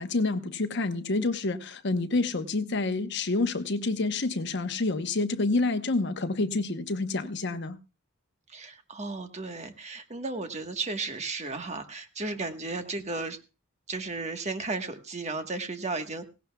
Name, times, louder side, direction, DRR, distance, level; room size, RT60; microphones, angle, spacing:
voice 1, 0.0-7.8, left 3 dB, 55° left, 1.0 m, -28 dB
voice 2, 8.5-13.4 13.9-16.3, right 3 dB, 35° right, 1.3 m, -34 dB
17.0 x 17.0 x 2.3 m
head